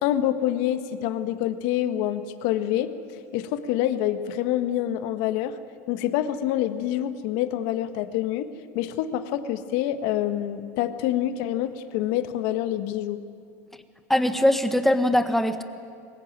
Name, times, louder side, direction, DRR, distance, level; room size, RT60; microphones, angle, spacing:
voice 1, 0.0-2.9 3.3-5.6 5.9-13.2, left 12 dB, 65° left, 10 dB, 1.5 m, -26 dB
voice 2, 14.1-15.6, left 1 dB, 5° left, 8 dB, 1.5 m, -21 dB
23.5 x 21.0 x 9.1 m, 2.3 s
supercardioid pair, 120°, 8 cm